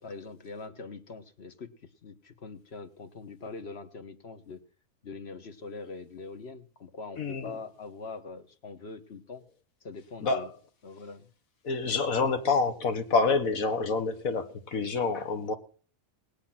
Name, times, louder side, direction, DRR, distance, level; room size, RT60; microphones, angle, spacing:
voice 1, 0.0-4.6 5.0-9.4 9.8-10.5 10.8-11.3, left 4 dB, 50° left, 1.4 m, -43 dB
voice 2, 7.2-7.6 10.2-10.5 11.6-15.5, left 4 dB, 85° left, 1.9 m, -27 dB
20.5 x 8.7 x 5.9 m
omnidirectional pair, 1.4 m